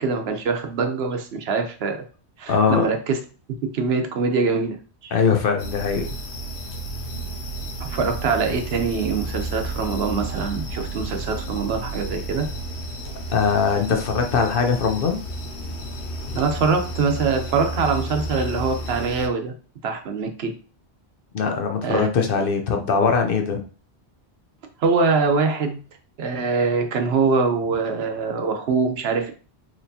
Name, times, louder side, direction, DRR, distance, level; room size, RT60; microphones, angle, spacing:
voice 1, 0.0-2.0 2.4-3.2 3.7-5.2 7.8-12.5 16.3-19.5 19.8-20.5 21.8-22.1 24.8-25.8 26.2-29.3, right 4 dB, 70° right, 5 dB, 0.9 m, -23 dB
voice 2, 2.5-2.8 5.1-6.1 13.3-15.2 21.3-23.6, left 5 dB, 60° left, 4 dB, 0.9 m, -21 dB
sound 1, 5.6-19.3, right 1 dB, 85° left, 0.9 m, -32 dB
4.4 x 3.0 x 2.7 m, 0.37 s
omnidirectional pair, 1.1 m